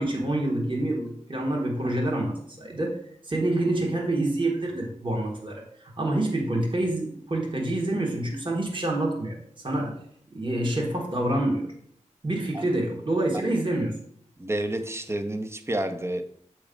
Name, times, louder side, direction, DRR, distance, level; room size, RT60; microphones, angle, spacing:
voice 1, 0.0-9.4 9.6-10.0 10.3-11.7 12.2-14.0, right 1 dB, 40° right, 1.4 m, -27 dB
voice 2, 14.4-16.2, right 1 dB, 20° right, 0.7 m, -29 dB
7.8 x 3.1 x 5.1 m
wide cardioid pair, 75°, 13 cm